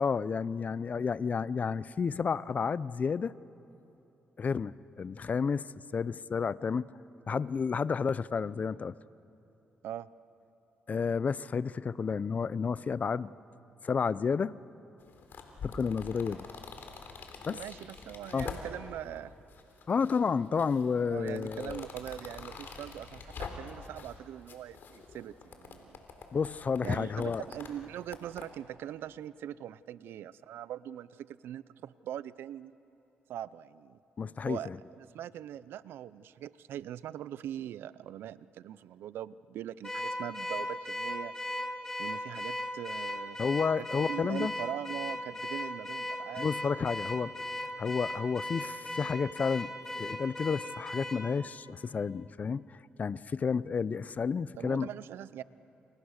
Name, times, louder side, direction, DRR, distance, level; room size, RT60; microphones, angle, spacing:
voice 1, 0.0-3.3 4.4-5.7 5.9-6.9 7.3-8.9 10.9-13.3 13.8-14.6 15.6-16.4 17.5-17.6 18.3-18.5 19.9-21.9 26.3-27.4 34.2-34.8 43.4-44.5 46.4-47.3 47.8-54.9, left 5 dB, 45° left, 18 dB, 0.6 m, -31 dB
sound 1, 15.0-19.0 19.5-20.2 20.5-24.2 24.5-28.5, left 5 dB, 65° left, 3.4 m, -45 dB
voice 2, 17.4-19.3 21.1-26.0 26.8-32.7 33.3-34.0 34.5-41.6 42.0-43.4 43.8-46.5 54.6-55.4, right 11 dB, 80° right, 17 dB, 0.6 m, -41 dB
Car / Alarm, 39.8-51.3, left 1 dB, 15° left, 3.1 m, -37 dB
29.0 x 29.0 x 6.6 m, 2.9 s
cardioid pair, 80°, 4 cm